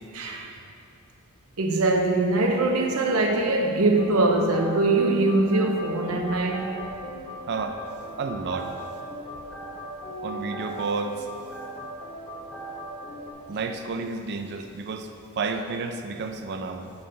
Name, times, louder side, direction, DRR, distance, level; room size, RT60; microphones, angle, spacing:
voice 1, 0.1-0.5 1.6-6.8, right 2 dB, 85° right, 0.7 m, -22 dB
sound 1, 4.0-13.3, right 1 dB, 10° left, 1.3 m, -38 dB
voice 2, 7.5-7.8 8.2-8.8 10.2-11.3 13.5-15.1 15.4-16.9, right 4 dB, 50° right, 0.4 m, -31 dB
5.6 x 5.3 x 6.8 m
head